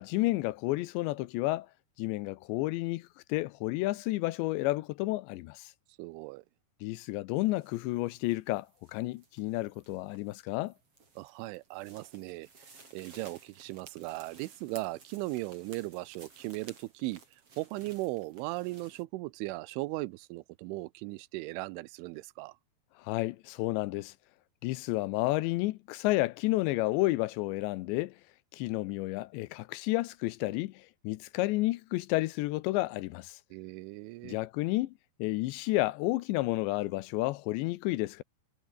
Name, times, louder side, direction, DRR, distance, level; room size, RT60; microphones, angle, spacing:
voice 1, 0.0-1.7 2.0-5.7 6.8-10.7 23.0-24.1 24.6-28.1 28.5-33.4 34.2-34.9 35.2-38.2, left 19 dB, 80° left, 2.8 m, -31 dB
voice 2, 6.0-6.4 11.2-12.5 12.9-17.2 17.6-22.6 33.5-34.4, right 21 dB, 90° right, 3.3 m, -37 dB
sound 1, 7.5-19.0, right 4 dB, 30° right, 5.5 m, -57 dB
omnidirectional pair, 5.4 m